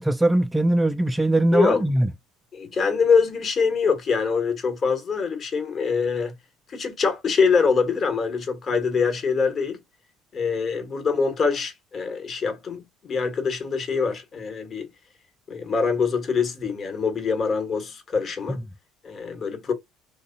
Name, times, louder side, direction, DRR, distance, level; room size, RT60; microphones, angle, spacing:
voice 1, 0.0-2.1, right 1 dB, 10° right, 0.3 m, -21 dB
voice 2, 2.5-6.3 6.7-9.8 10.3-14.9 15.5-18.6 19.0-19.7, left 5 dB, 40° left, 1.2 m, -24 dB
3.4 x 2.3 x 2.5 m
figure-of-eight pair, 60°, 0 cm